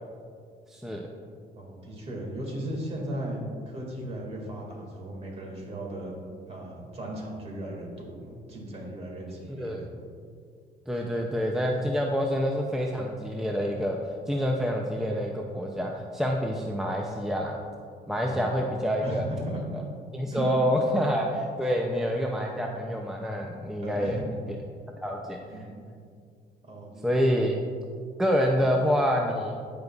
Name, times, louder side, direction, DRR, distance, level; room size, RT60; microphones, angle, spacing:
voice 1, 0.7-1.1 9.5-9.8 10.9-14.0 14.3-17.6 18.1-19.3 20.1-24.2 25.0-25.4 27.0-27.6 28.2-29.6, equal, 5° right, 0 dB, 0.5 m, -27 dB
voice 2, 1.6-6.1 6.5-9.9 18.2-18.5 19.0-19.8 20.3-20.5 23.8-24.2 25.5-25.9 26.6-27.0, right 1 dB, 40° right, -1 dB, 2.0 m, -36 dB
14.5 x 5.3 x 2.4 m, 2.2 s
cardioid pair, 110°, 17 cm